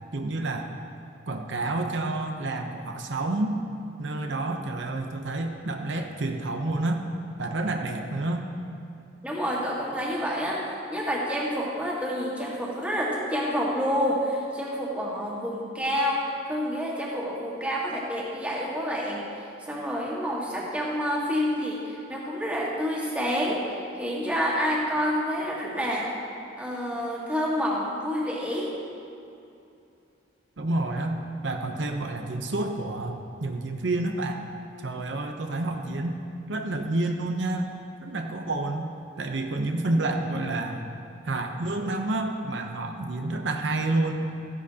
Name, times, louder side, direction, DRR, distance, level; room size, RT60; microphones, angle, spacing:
voice 1, 0.1-0.7 1.3-3.6 4.0-7.0 7.4-8.5 30.6-34.4 34.8-36.1 36.5-37.7 38.0-38.9 39.2-40.8 41.2-44.3, right 2 dB, 70° right, 4 dB, 0.7 m, -29 dB
voice 2, 9.2-19.2 19.7-26.1 26.6-28.7, equal, 5° right, -4 dB, 1.6 m, -28 dB
15.0 x 11.0 x 2.8 m, 2.6 s
head